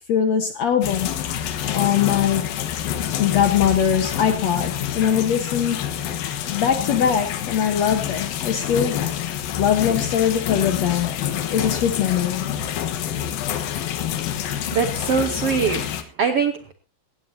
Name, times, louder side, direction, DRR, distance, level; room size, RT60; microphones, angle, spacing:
voice 1, 0.1-1.1 1.7-2.5 3.2-5.8 6.5-9.0 9.6-11.1 11.5-12.5, left 8 dB, 60° left, 7 dB, 2.0 m, -21 dB
sound 1, 0.8-16.0, left 10 dB, 75° left, 3.0 m, -27 dB
voice 2, 14.7-16.7, right 6 dB, 75° right, 8 dB, 1.3 m, -23 dB
17.5 x 16.5 x 2.8 m, 0.34 s
omnidirectional pair, 4.3 m